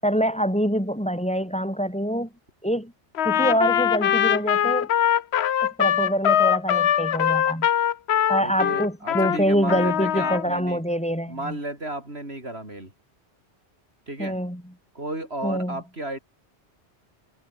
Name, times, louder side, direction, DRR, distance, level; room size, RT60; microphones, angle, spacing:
voice 1, 0.0-2.3 2.6-2.9 3.2-4.9 5.6-7.7 8.3-11.6 14.2-14.6 15.4-15.8, equal, 5° left, 5.6 m, -25 dB
Trumpet, 3.1-9.4 9.7-10.4, left 10 dB, 70° left, 1.0 m, -22 dB
voice 2, 8.4-10.8 11.3-12.9 14.1-14.4 14.9-16.2, right 1 dB, 65° right, 6.2 m, -33 dB
omnidirectional pair, 1.2 m